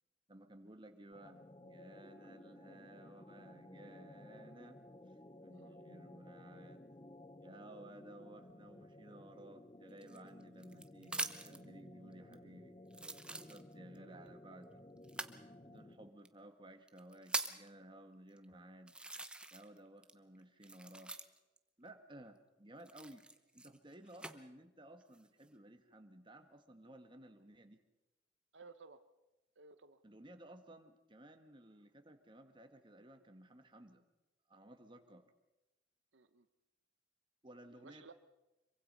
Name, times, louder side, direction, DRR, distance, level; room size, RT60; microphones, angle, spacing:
voice 1, 0.3-4.8 5.1-6.9 7.4-12.8 13.0-14.8 15.6-18.9 19.5-21.2 21.8-23.3 23.5-27.8 30.0-34.0 34.5-35.2 37.4-38.1, right 1 dB, 25° right, 6 dB, 1.6 m, -56 dB
sound 1, 1.1-16.2, left 1 dB, 25° left, 0.8 m, -56 dB
sound 2, 10.0-11.6 12.3-12.4 12.9-14.0 15.0-15.4 16.3-16.4 16.9-17.7 18.4-18.5 18.9-19.8 20.0-21.6 22.8-24.4 25.0-25.5, right 2 dB, 5° right, 0.8 m, -43 dB
voice 2, 28.5-29.0 29.6-30.0 36.1-36.5 37.8-38.1, right 4 dB, 80° right, 10 dB, 1.0 m, -57 dB
26.0 x 24.0 x 5.5 m, 1.0 s
head